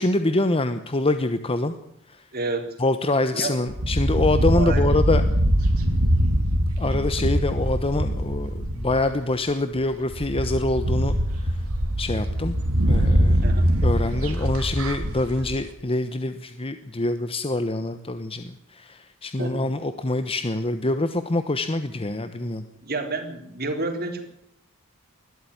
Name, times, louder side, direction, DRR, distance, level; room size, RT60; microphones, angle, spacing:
voice 1, 0.0-1.7 2.8-5.2 6.8-11.5 12.0-12.6 12.8-13.4 13.8-22.6, left 2 dB, 25° left, 10 dB, 1.0 m, -25 dB
voice 2, 2.3-2.6 3.3-3.5 4.5-5.0 13.4-13.7 19.4-19.7 22.8-24.2, right 3 dB, 45° right, 5 dB, 3.7 m, -29 dB
sound 1, 3.7-9.2 9.8-9.9 10.1-15.6, equal, 75° right, 3.2 m, -23 dB
21.0 x 13.0 x 9.7 m, 0.74 s
head